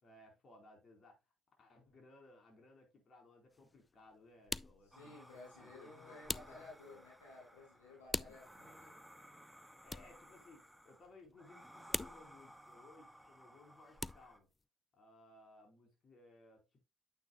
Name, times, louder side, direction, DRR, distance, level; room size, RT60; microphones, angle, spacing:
voice 1, 0.0-1.2 1.6-5.2 5.5-6.6 6.8-7.0 8.6-8.9 9.8-14.5 14.9-16.8, left 2 dB, 50° left, 4.2 m, -62 dB
sound 1, 3.5-3.9 4.4-5.7 6.2-6.9 8.1-8.8 9.8-10.4 10.7-11.3 11.9-13.0 13.7-14.4, left 3 dB, 25° left, 0.3 m, -43 dB
voice 2, 4.8-9.0, left 3 dB, 90° left, 3.1 m, -56 dB
sound 2, 4.9-14.4, equal, ahead, 1.4 m, -59 dB
9.1 x 7.9 x 2.3 m
hypercardioid pair, 45°, 0 cm